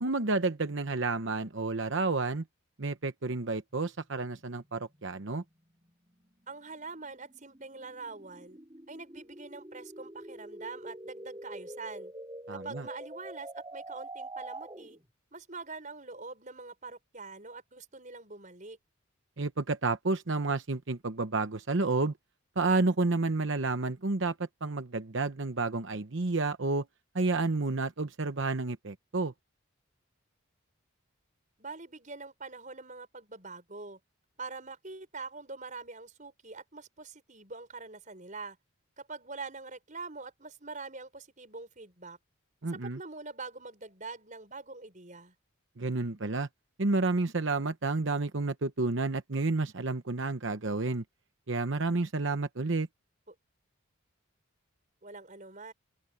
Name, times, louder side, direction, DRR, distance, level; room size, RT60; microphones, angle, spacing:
voice 1, 0.0-2.4 2.8-5.4 12.5-12.8 19.4-22.1 22.6-24.3 24.6-26.8 27.1-29.3 42.6-43.0 45.8-46.5 46.8-51.0 51.5-52.9, right 3 dB, 60° right, 0.9 m, -30 dB
sound 1, 3.9-15.0, right 1 dB, 20° right, 5.7 m, -46 dB
voice 2, 6.5-8.6 8.9-12.1 12.5-15.0 15.3-18.8 31.6-34.0 34.4-38.6 39.0-42.2 42.7-45.3 53.3-53.4 55.0-55.7, right 4 dB, 35° right, 6.0 m, -44 dB
open air
head